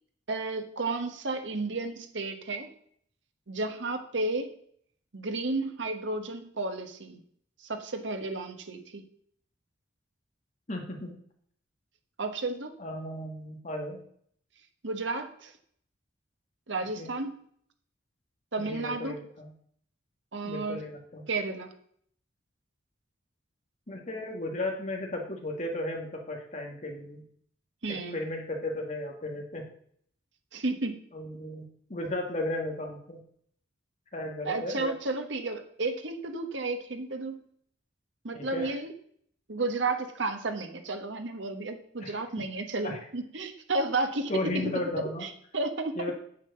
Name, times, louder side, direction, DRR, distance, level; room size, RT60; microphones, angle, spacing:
voice 1, 0.3-2.7 3.5-4.5 5.1-7.2 7.6-9.0 12.2-12.7 14.8-15.5 16.7-17.3 18.5-19.2 20.3-20.8 21.3-21.7 27.8-28.2 30.5-31.0 34.4-37.4 38.2-38.9 39.5-44.7 45.2-46.1, right 3 dB, 80° right, 7 dB, 1.3 m, -32 dB
voice 2, 10.7-11.2 12.8-14.0 17.0-17.1 18.6-19.5 20.4-21.3 23.9-27.2 27.9-29.7 31.1-33.2 34.1-34.9 38.3-38.7 42.0-42.2 42.8-43.0 44.3-45.2 46.0-46.1, left 1 dB, 40° left, 1 dB, 1.6 m, -35 dB
7.5 x 7.3 x 6.7 m, 0.64 s
head